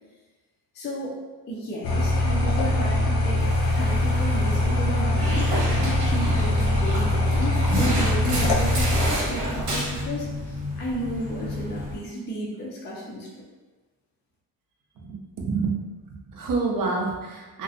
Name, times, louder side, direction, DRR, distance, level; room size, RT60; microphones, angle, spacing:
voice 1, 0.7-1.2 1.5-13.3, right 1 dB, 30° left, -4 dB, 0.4 m, -33 dB
sound 1, 1.8-9.1, left 1 dB, 80° left, 0.7 m, -22 dB
sound 2, 3.4-12.0, left 2 dB, 20° right, 0.7 m, -35 dB
Dog, 5.1-10.1, right 1 dB, 80° right, 0.9 m, -29 dB
voice 2, 15.0-17.6, right 4 dB, 55° right, 0 dB, 0.5 m, -28 dB
2.5 x 2.0 x 2.5 m, 1.2 s
wide cardioid pair, 165°, 39 cm